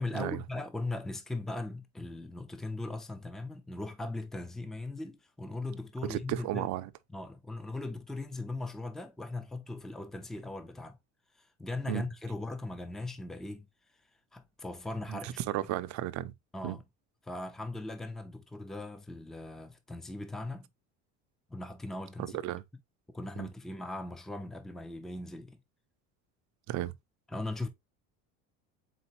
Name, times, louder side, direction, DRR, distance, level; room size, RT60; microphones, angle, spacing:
voice 1, 0.0-6.7 7.1-11.0 11.4-13.7 14.3-15.4 16.5-16.8 17.2-20.7 21.5-22.4 23.1-25.6 27.3-27.7, left 2 dB, ahead, 0.5 m, -39 dB
voice 2, 6.1-6.9 11.9-12.0 15.1-16.3 16.6-16.8 22.2-22.6 23.4-23.5 26.7-26.9, right 15 dB, 60° right, 0.5 m, -34 dB
4.0 x 4.0 x 2.8 m
cardioid pair, 120°, 33 cm